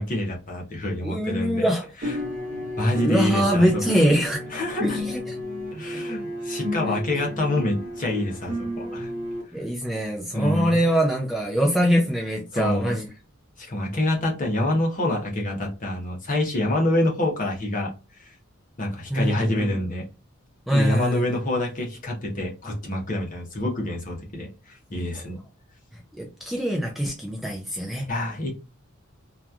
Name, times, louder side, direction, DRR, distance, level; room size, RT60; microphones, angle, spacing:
voice 1, 0.0-1.7 2.8-3.8 4.5-5.0 5.7-9.1 10.3-10.8 12.5-12.9 13.6-17.9 18.3-18.4 18.8-20.1 20.7-25.4 28.1-28.5, left 1 dB, 40° left, 0 dB, 0.8 m, -26 dB
voice 2, 1.0-1.9 2.9-4.4 4.8-5.4 6.9-7.0 9.5-13.0 19.1-19.8 20.7-21.2 26.1-28.1, equal, ahead, -1 dB, 0.4 m, -23 dB
sound 1, 2.0-9.4, left 1 dB, 40° right, 0.9 m, -32 dB
2.9 x 2.4 x 2.3 m, 0.31 s
head